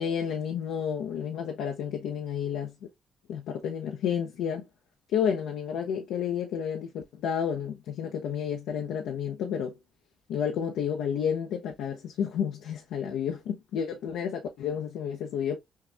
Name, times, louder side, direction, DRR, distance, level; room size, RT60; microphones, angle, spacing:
voice 1, 0.0-2.9 3.3-4.7 5.1-9.8 10.3-15.6, left 8 dB, 90° left, 0.8 m, -31 dB
6.5 x 2.4 x 3.4 m
cardioid pair, 90°, 0 cm